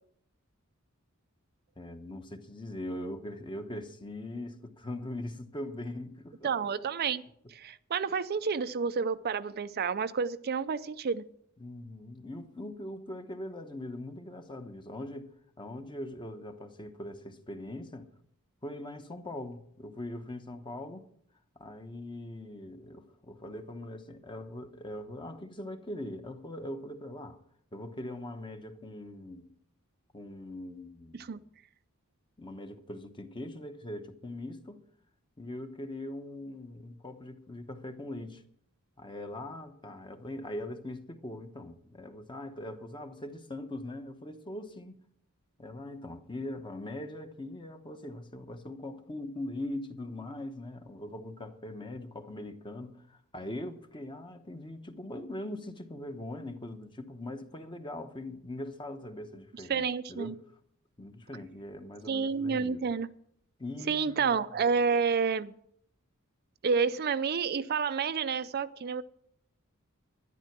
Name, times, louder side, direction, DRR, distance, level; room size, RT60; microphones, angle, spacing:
voice 1, 1.8-6.5 11.6-15.3 15.6-18.1 18.6-21.1 21.6-27.4 27.7-29.5 30.1-31.4 32.4-34.8 35.4-38.4 39.0-45.0 45.6-60.4 61.0-62.9 63.6-64.4, left 1 dB, 20° left, 1.0 m, -41 dB
voice 2, 6.4-7.2 7.5-11.3 31.1-31.4 59.7-60.3 62.1-63.1 63.9-65.5 66.6-69.0, right 5 dB, 45° right, 0.4 m, -29 dB
12.5 x 10.5 x 6.0 m
head